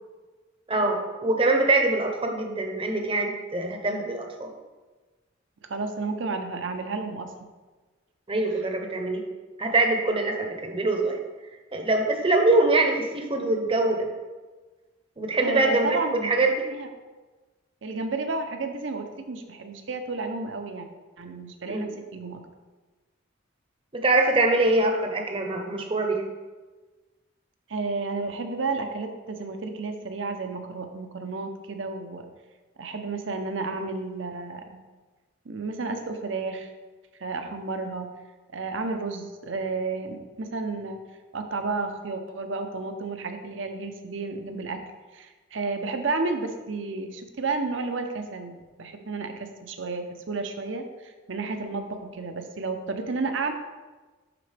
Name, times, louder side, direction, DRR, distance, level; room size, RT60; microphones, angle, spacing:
voice 1, 0.7-4.5 8.3-9.2 9.6-11.2 11.7-14.1 15.2-16.0 16.2-16.5 21.7-21.9 23.9-26.3, right 2 dB, 25° right, 3 dB, 0.8 m, -23 dB
voice 2, 5.7-7.3 15.4-16.4 16.7-16.9 17.8-20.9 21.2-22.4 27.7-32.3 32.8-34.8 35.4-36.7 37.2-38.1 38.5-41.0 41.3-44.8 45.1-53.5, right 3 dB, 65° right, 6 dB, 0.7 m, -32 dB
11.0 x 3.9 x 3.4 m, 1.3 s
head